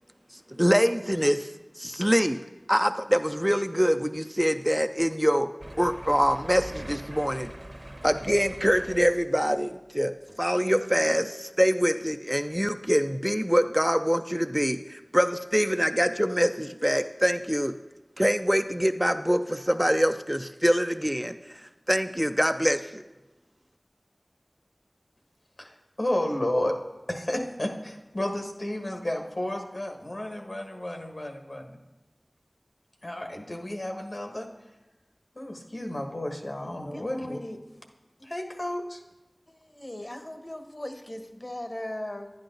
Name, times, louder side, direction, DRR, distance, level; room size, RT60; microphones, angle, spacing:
voice 1, 0.5-1.5 1.8-2.4 2.7-7.5 8.0-17.7 18.2-21.6 21.9-23.0, equal, 5° right, 8 dB, 0.4 m, -24 dB
sound 1, 5.6-9.5 10.3-10.4 10.8-10.9, right 1 dB, 40° right, 0.9 m, -42 dB
voice 2, 25.6-26.8 27.1-31.8 33.0-34.5 35.3-37.4 38.2-39.0, left 1 dB, 65° left, 2 dB, 1.5 m, -32 dB
voice 3, 36.9-37.6 39.5-42.3, left 1 dB, 50° left, 5 dB, 1.1 m, -38 dB
11.0 x 10.5 x 3.9 m, 1.1 s
wide cardioid pair, 40°, 0 cm